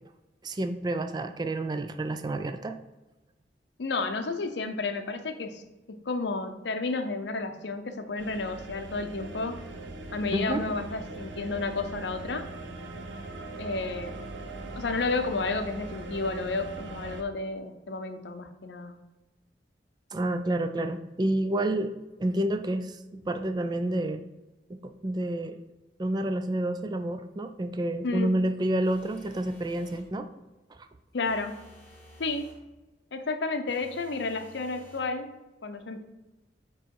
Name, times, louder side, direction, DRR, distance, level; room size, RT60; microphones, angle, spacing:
voice 1, 0.4-2.8 10.3-10.6 20.1-21.9 22.2-24.3 24.7-25.6 26.0-30.3, right 1 dB, 25° right, 8 dB, 0.3 m, -29 dB
voice 2, 3.8-5.6 5.9-9.6 10.1-12.5 13.6-14.2 14.7-18.9 28.0-28.4 31.1-31.6 32.2-32.5 33.1-35.3 35.6-36.0, left 3 dB, 70° left, 7 dB, 0.6 m, -31 dB
sound 1, 8.2-17.2, right 2 dB, 85° right, 0.7 m, -40 dB
sound 2, 28.8-30.1 31.2-32.6 33.7-35.1, equal, 10° left, 1.2 m, -53 dB
7.8 x 3.0 x 4.6 m, 1.1 s
head